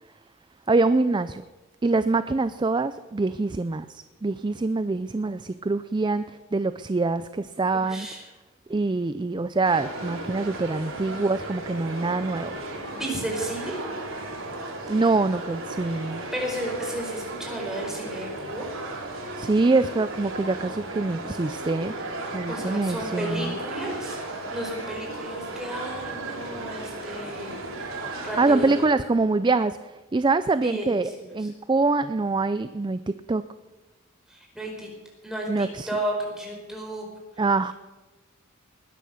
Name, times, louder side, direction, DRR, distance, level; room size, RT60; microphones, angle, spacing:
voice 1, 0.7-1.4 1.8-8.1 8.7-12.6 14.9-16.2 19.4-21.9 22.3-23.6 28.0-33.4 35.5-35.9 37.4-37.7, right 3 dB, 20° right, 13 dB, 0.4 m, -25 dB
voice 2, 7.7-8.2 12.9-13.8 16.3-18.7 22.5-24.2 24.5-27.6 28.2-28.7 30.6-31.5 34.3-34.9 35.2-37.1, right 1 dB, 5° right, -1 dB, 4.5 m, -33 dB
sound 1, 9.6-28.9, right 2 dB, 75° right, 3.9 m, -35 dB
20.5 x 10.5 x 6.4 m, 1.2 s
head